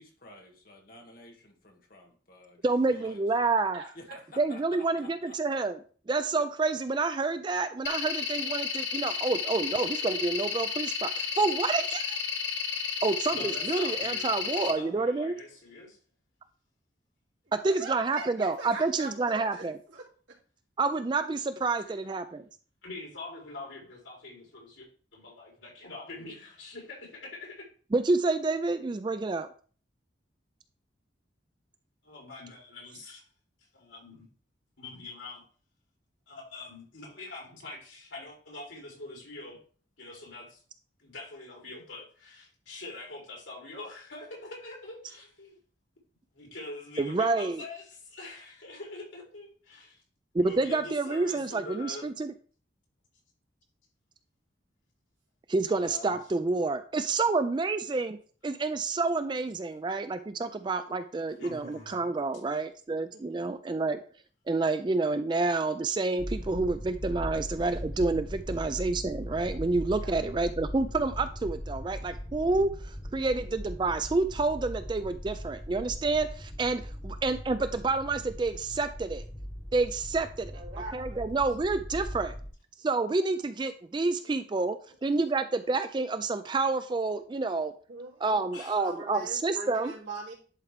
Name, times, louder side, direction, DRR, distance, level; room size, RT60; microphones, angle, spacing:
voice 1, 0.0-3.5 4.0-5.6, left 1 dB, 50° left, 2 dB, 1.7 m, -51 dB
voice 2, 2.6-3.8 4.4-5.8 6.1-12.2 13.0-15.3 17.5-19.8 20.8-22.5 27.9-29.5 47.0-47.6 50.3-52.3 55.5-58.2 58.4-64.0 64.5-79.2 79.7-80.6 80.9-82.3 82.8-87.7 88.2-89.9, right 3 dB, 25° right, 11 dB, 0.3 m, -28 dB
voice 3, 3.7-4.2 17.6-20.1 26.2-26.3 63.1-63.6 70.0-70.2 73.2-73.6 80.5-81.2 87.9-88.3 88.7-90.3, right 3 dB, 75° right, -4 dB, 2.7 m, -42 dB
sound 1, 7.9-14.7, left 6 dB, 65° left, 1.0 m, -32 dB
voice 4, 13.3-16.0 21.8-22.0 22.8-27.6 32.0-33.2 33.7-34.3 34.8-35.4 36.3-39.6 40.0-40.6 41.0-45.6 46.3-50.0 50.4-52.0 55.8-56.2 61.4-62.0 88.5-88.8, left 2 dB, 80° left, -2 dB, 3.2 m, -44 dB
sound 2, 66.2-82.5, equal, 20° left, 0.9 m, -39 dB
11.0 x 4.4 x 3.4 m, 0.42 s
head